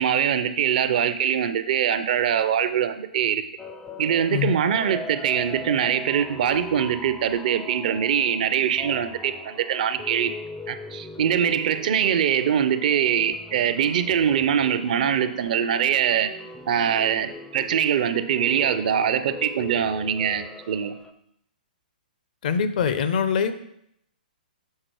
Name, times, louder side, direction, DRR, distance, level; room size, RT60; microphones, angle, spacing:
voice 1, 0.0-3.4 4.0-10.3 10.7-16.3 16.7-20.9, right 8 dB, 55° right, 11 dB, 0.5 m, -23 dB
sound 1, 3.6-21.1, left 2 dB, 10° left, 0.4 m, -40 dB
voice 2, 22.4-23.5, left 7 dB, 60° left, 11 dB, 0.6 m, -23 dB
6.6 x 3.8 x 4.5 m, 0.74 s
hypercardioid pair, 125°, 5 cm